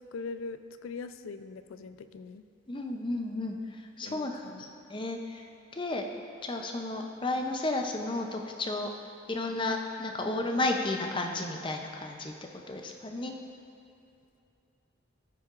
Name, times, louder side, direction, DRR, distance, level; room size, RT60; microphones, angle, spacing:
voice 1, 0.0-2.4 4.0-4.7, left 4 dB, 85° left, 11 dB, 0.4 m, -42 dB
voice 2, 2.7-3.5 4.0-4.5 4.9-5.4 5.7-6.1 6.4-8.9 9.3-12.3 12.7-13.3, left 2 dB, 25° left, 3 dB, 0.5 m, -32 dB
15.0 x 5.7 x 2.5 m, 2.7 s
head